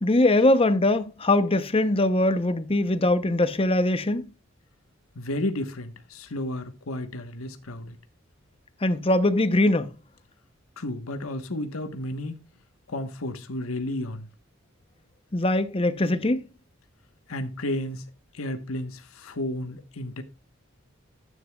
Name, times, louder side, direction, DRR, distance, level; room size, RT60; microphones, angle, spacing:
voice 1, 0.0-4.3 8.8-9.9 15.3-16.5, left 1 dB, 25° left, 0.7 m, -22 dB
voice 2, 5.1-8.0 10.8-12.4 12.9-14.3 17.3-18.0 18.3-20.2, left 1 dB, 90° left, 1.2 m, -32 dB
12.5 x 9.2 x 2.3 m
head